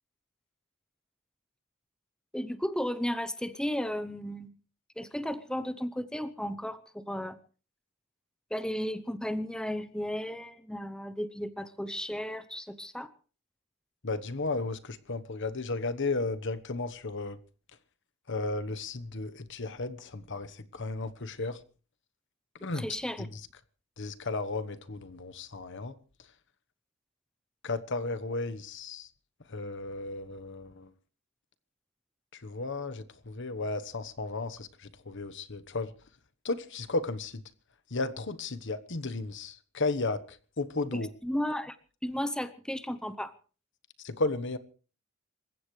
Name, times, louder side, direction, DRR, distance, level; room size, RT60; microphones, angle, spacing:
voice 1, 2.3-4.5 5.0-7.4 8.5-13.1 22.7-23.3 40.9-41.8 42.0-43.3, equal, 5° left, 0.8 m, -34 dB
voice 2, 14.0-17.4 18.3-21.6 22.6-22.8 23.2-23.3 24.0-25.9 27.6-29.1 29.5-30.9 32.3-35.9 36.4-37.4 37.9-41.1 44.0-44.6, left 3 dB, 60° left, 1.2 m, -34 dB
27.5 x 15.5 x 3.2 m
head